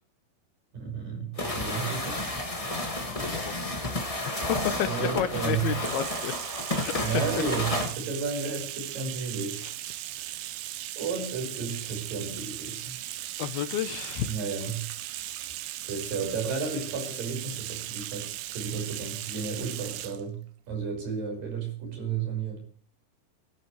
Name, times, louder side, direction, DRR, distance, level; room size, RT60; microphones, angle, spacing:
voice 1, 0.7-2.3 4.9-5.7 7.0-9.6 11.0-13.4 14.3-14.9 15.8-22.7, right 5 dB, 55° right, 7.3 m, -33 dB
sound 1, 1.4-7.9, left 1 dB, 35° left, 0.5 m, -31 dB
voice 2, 3.1-3.9 4.3-6.3 6.7-7.1 9.6-9.7 13.4-14.3, left 10 dB, 75° left, 2.6 m, -31 dB
Bathtub (filling or washing), 5.5-20.2, right 14 dB, 75° right, 2.4 m, -38 dB
29.5 x 12.5 x 3.3 m
omnidirectional pair, 4.9 m